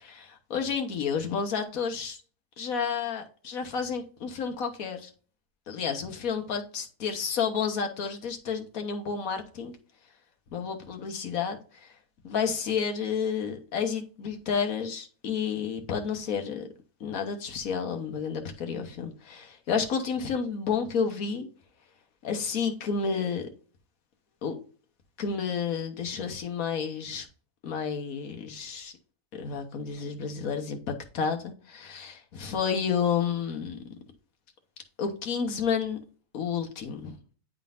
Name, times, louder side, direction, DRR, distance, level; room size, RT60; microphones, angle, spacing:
voice 1, 0.0-2.2 2.6-5.1 5.7-9.8 10.5-11.9 12.2-16.7 17.0-21.5 22.2-23.5 24.4-24.6 25.2-27.3 27.6-28.9 29.3-33.8 35.0-36.0 36.3-37.1, left 6 dB, 65° left, 1.5 m, -31 dB
10.0 x 3.8 x 2.5 m
omnidirectional pair, 1.6 m